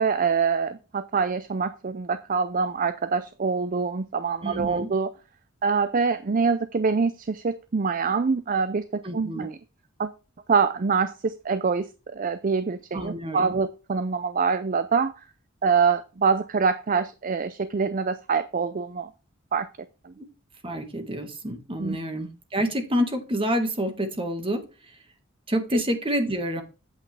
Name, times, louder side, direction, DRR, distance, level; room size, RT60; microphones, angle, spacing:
voice 1, 0.0-5.1 5.6-9.6 10.0-10.1 10.5-15.1 15.6-19.1 19.5-19.7 20.0-20.1 21.8-22.0 25.7-25.8, right 5 dB, 45° right, 13 dB, 0.5 m, -25 dB
voice 2, 4.4-4.9 9.0-9.5 12.9-13.5 20.2-20.3 20.6-24.6 25.5-26.6, equal, 25° right, 7 dB, 1.7 m, -28 dB
8.3 x 8.2 x 3.4 m, 0.31 s
head